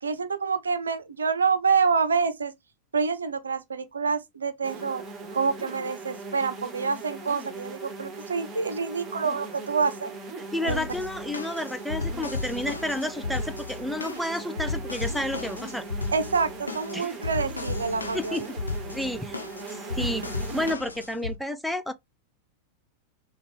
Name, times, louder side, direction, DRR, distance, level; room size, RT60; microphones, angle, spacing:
voice 1, 0.0-2.5 2.9-5.0 5.3-10.1 10.6-10.8 16.1-18.5, right 5 dB, 70° right, 0.6 m, -27 dB
sound 1, 4.6-20.7, right 3 dB, 20° right, 1.8 m, -40 dB
voice 2, 10.5-15.8 16.9-17.2 18.1-18.4 18.9-19.4 19.7-20.3 20.5-21.9, left 1 dB, ahead, 0.5 m, -31 dB
sound 2, 10.7-21.4, left 3 dB, 80° left, 0.9 m, -34 dB
6.4 x 2.3 x 3.1 m
figure-of-eight pair, 90°, 0 cm